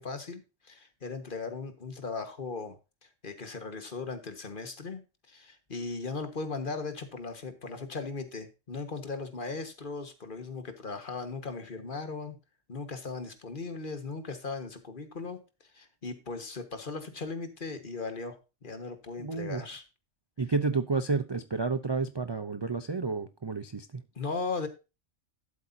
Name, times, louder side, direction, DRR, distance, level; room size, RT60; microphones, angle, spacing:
voice 1, 0.0-5.0 5.3-12.3 12.7-15.4 15.7-19.8 24.1-24.7, left 4 dB, 45° left, 1.6 m, -38 dB
voice 2, 19.2-19.6 20.4-24.0, right 4 dB, 35° right, 0.4 m, -30 dB
12.0 x 8.1 x 2.7 m
omnidirectional pair, 1.3 m